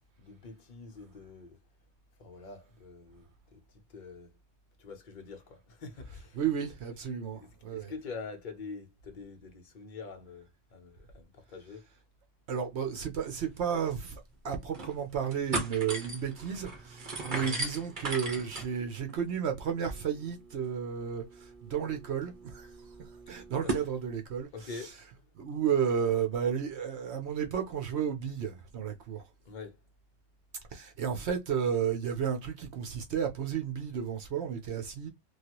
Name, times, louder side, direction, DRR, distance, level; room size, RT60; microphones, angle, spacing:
voice 1, 0.2-1.6 2.2-3.6 3.9-4.4 4.8-6.4 7.3-11.8 17.3-17.6 23.6-23.7 24.5-25.0 29.4-29.8, left 4 dB, 45° left, 0.8 m, -45 dB
voice 2, 6.3-7.9 12.5-22.7 23.3-24.9 25.4-29.2 30.7-35.1, right 8 dB, 65° right, 0.9 m, -32 dB
sound 1, 13.5-13.6 13.9-14.0 14.5-14.9 15.2-23.9, right 3 dB, 45° right, 1.1 m, -39 dB
3.2 x 2.4 x 2.9 m
omnidirectional pair, 1.2 m